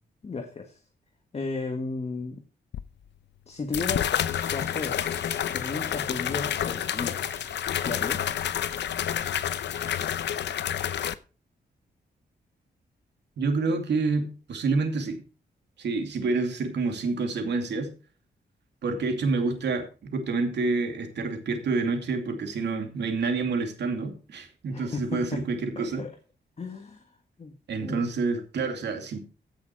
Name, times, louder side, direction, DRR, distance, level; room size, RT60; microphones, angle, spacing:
voice 1, 0.2-0.8 1.3-2.4 3.5-4.2 4.5-5.0 5.5-7.2 7.8-8.3 24.7-25.4 25.7-26.1 26.6-27.5 27.8-28.0, left 3 dB, 35° left, 5 dB, 1.6 m, -34 dB
sound 1, 2.7-2.8 3.7-11.1, left 10 dB, 90° left, 0.7 m, -29 dB
Rain, 4.3-10.3, left 2 dB, 15° left, 3.3 m, -48 dB
voice 2, 13.4-15.2 15.8-17.9 18.8-26.0 27.7-29.2, right 3 dB, 80° right, 5 dB, 2.6 m, -28 dB
15.5 x 6.5 x 4.7 m, 0.35 s
wide cardioid pair, 115°, 18 cm